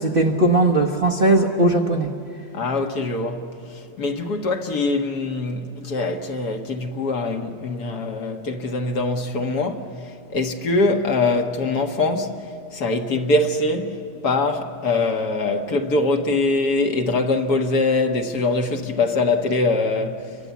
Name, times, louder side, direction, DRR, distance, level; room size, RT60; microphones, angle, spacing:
voice 1, 0.0-2.1, right 2 dB, 35° right, 1.1 m, -18 dB
voice 2, 2.5-20.4, left 2 dB, 60° left, 1.9 m, -23 dB
29.5 x 24.0 x 8.3 m
omnidirectional pair, 1.9 m